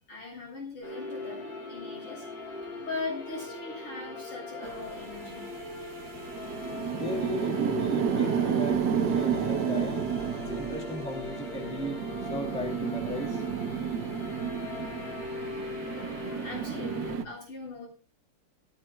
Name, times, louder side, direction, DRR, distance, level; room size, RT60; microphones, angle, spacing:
voice 1, 0.1-5.4 10.5-10.6 14.0-14.2 16.4-17.9, left 3 dB, 80° left, -3 dB, 8.6 m, -40 dB
sound 1, 0.8-17.2, left 2 dB, 65° left, 6.2 m, -39 dB
sound 2, 4.6-17.3, right 8 dB, 60° right, 1.3 m, -32 dB
voice 2, 6.9-10.0 10.3-12.0 12.3-13.4, left 1 dB, 5° left, 1 dB, 2.5 m, -36 dB
20.0 x 13.5 x 2.3 m, 0.36 s
omnidirectional pair, 2.4 m